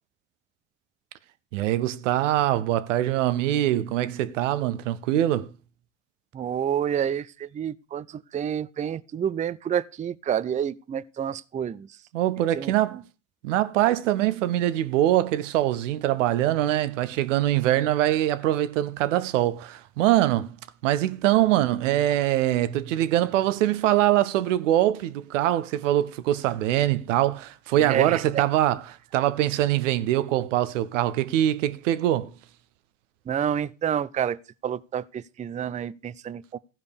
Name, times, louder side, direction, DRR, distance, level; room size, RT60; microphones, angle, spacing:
voice 1, 1.5-5.5 12.1-13.0 13.4-20.5 20.8-32.3, right 13 dB, 75° right, 0.8 m, -23 dB
voice 2, 6.3-8.1 8.3-11.9 12.5-12.7 27.8-28.4 33.3-34.4 34.6-36.6, right 9 dB, 20° right, 0.4 m, -28 dB
15.0 x 5.2 x 6.7 m
hypercardioid pair, 60°, 38 cm